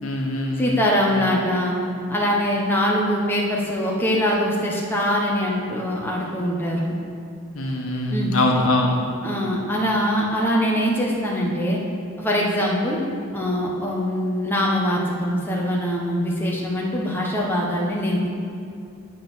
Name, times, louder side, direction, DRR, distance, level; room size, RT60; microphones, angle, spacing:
voice 1, 0.0-0.9 7.5-9.0, left 1 dB, 80° left, 0 dB, 1.3 m, -23 dB
voice 2, 0.6-1.8 2.1-7.0 8.1-8.3 9.2-11.8 12.2-13.0 13.3-18.3, equal, 10° left, -4 dB, 1.2 m, -23 dB
8.0 x 7.7 x 6.3 m, 2.5 s
head